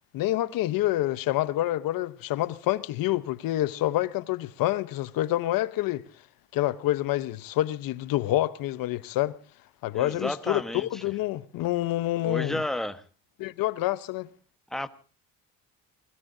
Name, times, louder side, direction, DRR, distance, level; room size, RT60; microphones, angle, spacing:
voice 1, 0.1-6.0 6.5-9.3 9.8-12.6 13.4-14.3, left 15 dB, 75° left, 1.0 m, -27 dB
voice 2, 9.9-11.0 12.2-13.0 14.7-14.9, left 1 dB, ahead, 1.3 m, -32 dB
28.5 x 17.5 x 2.7 m
cardioid pair, 115°, 34 cm